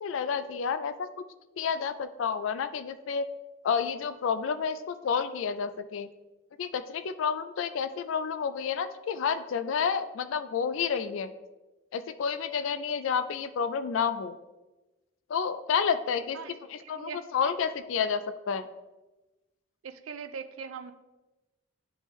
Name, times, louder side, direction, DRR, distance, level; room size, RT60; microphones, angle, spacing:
voice 1, 0.0-1.1 1.6-3.3 3.6-6.1 6.6-11.3 11.9-14.4 15.3-16.4 16.7-18.7, left 6 dB, 70° left, 11 dB, 0.3 m, -30 dB
voice 2, 16.8-17.2 19.8-20.9, right 6 dB, 80° right, 10 dB, 0.4 m, -40 dB
10.0 x 3.5 x 3.1 m, 1.1 s
head